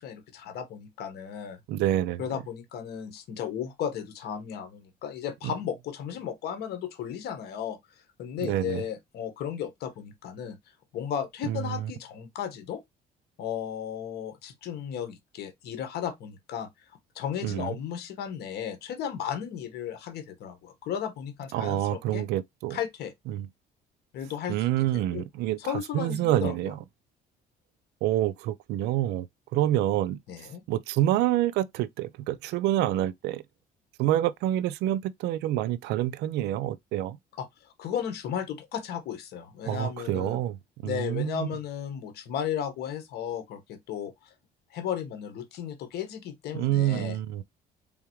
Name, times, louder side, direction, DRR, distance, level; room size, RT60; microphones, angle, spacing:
voice 1, 0.0-1.6 2.2-7.8 8.2-10.6 10.9-12.8 13.4-16.7 17.1-22.2 22.7-23.1 24.1-25.2 25.6-26.7 30.3-30.6 37.4-40.4 40.8-44.3 44.7-47.2, left 9 dB, 70° left, 1.2 m, -35 dB
voice 2, 1.7-2.2 8.4-8.8 11.4-11.9 17.4-17.8 21.5-22.8 23.3-23.5 24.5-26.8 28.0-29.3 29.5-30.2 30.7-33.4 34.0-37.2 39.6-41.5 46.5-47.4, right 13 dB, 85° right, 0.5 m, -27 dB
3.8 x 3.6 x 3.0 m
cardioid pair, 110°, 17 cm